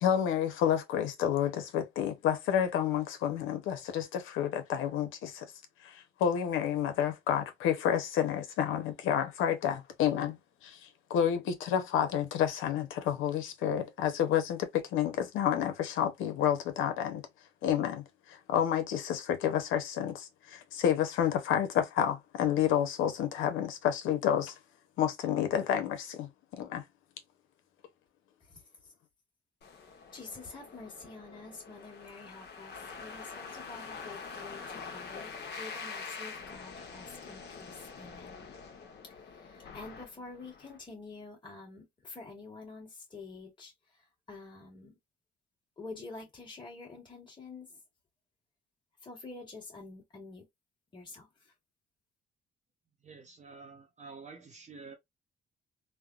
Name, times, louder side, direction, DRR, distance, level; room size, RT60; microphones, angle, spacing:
voice 1, 0.0-5.5 5.8-17.2 17.6-24.5 25.0-26.8, left 9 dB, 90° left, 0.7 m, -30 dB
voice 2, 28.4-28.9 30.1-38.5 39.1-45.0 45.8-47.8 49.0-50.5 50.9-51.5, left 3 dB, 25° left, 1.4 m, -48 dB
sound 1, 29.6-40.8, left 5 dB, 55° left, 0.9 m, -45 dB
voice 3, 53.0-55.0, right 4 dB, 35° right, 0.7 m, -49 dB
3.3 x 2.0 x 2.3 m
cardioid pair, 90°, 20 cm